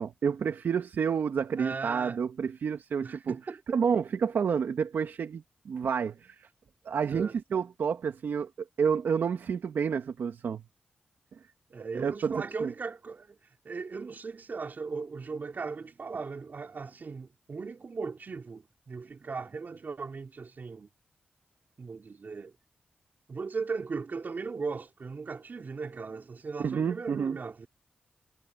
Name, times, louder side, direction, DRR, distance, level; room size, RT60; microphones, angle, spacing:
voice 1, 0.0-3.4 3.7-6.5 6.8-8.5 8.8-10.6 11.9-12.7 26.6-27.4, right 6 dB, 75° right, 2.4 m, -29 dB
voice 2, 1.6-2.2 3.0-3.6 7.1-7.3 11.7-20.9 21.8-22.5 23.3-27.7, right 4 dB, 55° right, 3.5 m, -38 dB
cardioid pair, 50°, 4 cm